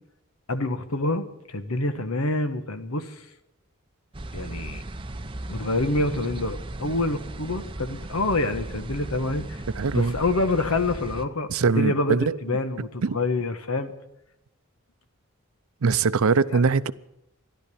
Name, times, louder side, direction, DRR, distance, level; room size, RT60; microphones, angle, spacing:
voice 1, 0.5-3.3 4.3-4.8 5.5-9.6 9.9-13.9 16.5-16.6, left 2 dB, 80° left, 1.4 m, -27 dB
sound 1, 4.1-11.2, right 1 dB, 25° right, 0.7 m, -36 dB
voice 2, 9.8-10.1 11.5-12.3 13.0-13.2 15.8-16.9, right 5 dB, 75° right, 0.6 m, -22 dB
14.0 x 11.5 x 8.5 m
head